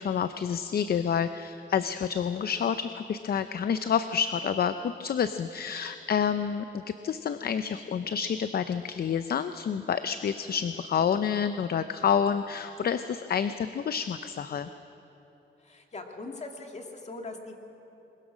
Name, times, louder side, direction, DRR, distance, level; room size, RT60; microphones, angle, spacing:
voice 1, 0.0-14.7, left 7 dB, 50° left, 11 dB, 0.6 m, -28 dB
voice 2, 15.6-17.5, left 2 dB, 35° left, 3 dB, 2.1 m, -41 dB
21.5 x 21.0 x 6.2 m, 3.0 s
wide cardioid pair, 120°, 20 cm